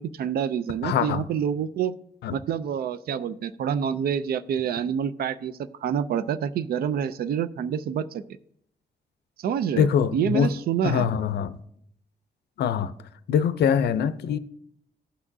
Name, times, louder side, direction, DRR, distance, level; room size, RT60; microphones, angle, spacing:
voice 1, 0.0-2.0 2.3-5.5 5.8-8.2 9.4-11.1, right 8 dB, 65° right, 0.4 m, -27 dB
voice 2, 0.8-1.2 2.2-2.3 9.8-10.5 10.8-11.5 12.6-12.9 13.3-14.4, left 8 dB, 85° left, 0.5 m, -23 dB
15.0 x 6.0 x 2.7 m
wide cardioid pair, 145°, 17 cm